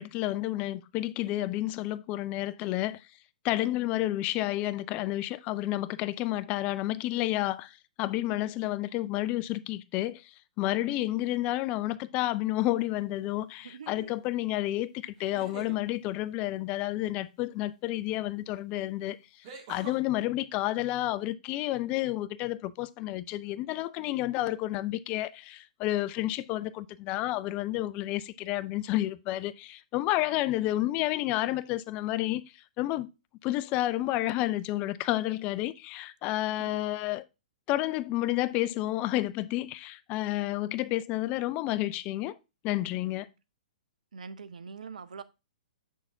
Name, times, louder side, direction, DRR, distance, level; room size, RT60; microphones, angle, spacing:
voice 1, 0.0-3.0 3.4-19.2 19.7-32.4 32.8-33.1 33.4-37.2 37.7-42.4 42.6-43.3, left 15 dB, 30° left, 0.3 m, -30 dB
sound 1, 12.6-13.0 15.1-15.8 18.1-18.2 19.4-20.0, right 5 dB, 40° right, 1.7 m, -45 dB
voice 2, 13.6-14.1 36.6-36.8 44.1-45.2, right 5 dB, 70° right, 0.6 m, -44 dB
7.0 x 6.3 x 2.6 m
figure-of-eight pair, 115°, 4 cm